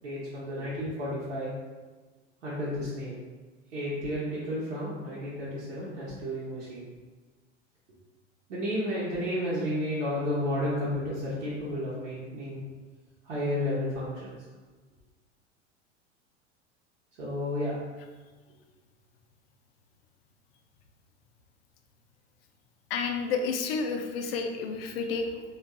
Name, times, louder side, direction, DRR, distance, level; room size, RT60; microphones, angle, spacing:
voice 1, 0.0-1.5 2.4-3.2 3.7-6.9 8.5-12.6 13.2-14.3 17.2-17.7, left 1 dB, 70° right, -9 dB, 0.9 m, -32 dB
voice 2, 22.9-25.4, left 4 dB, 55° left, 5 dB, 0.4 m, -30 dB
3.4 x 2.3 x 2.2 m, 1.3 s
figure-of-eight pair, 85°, 36 cm